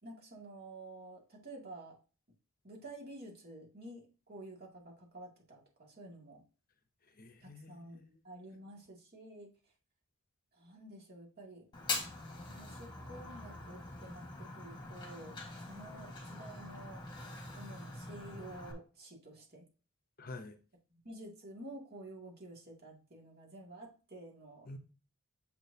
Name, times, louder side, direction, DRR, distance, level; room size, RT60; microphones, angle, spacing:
voice 1, 0.0-2.0 2.6-6.4 7.4-9.5 10.5-11.6 12.5-17.0 17.5-19.7 20.9-24.7, right 1 dB, 45° right, 2.4 m, -51 dB
voice 2, 7.0-8.2 20.2-20.6 24.6-24.8, left 2 dB, 40° left, 0.8 m, -49 dB
Fire, 11.7-18.7, left 3 dB, 20° left, 1.6 m, -43 dB
7.4 x 6.2 x 2.8 m
head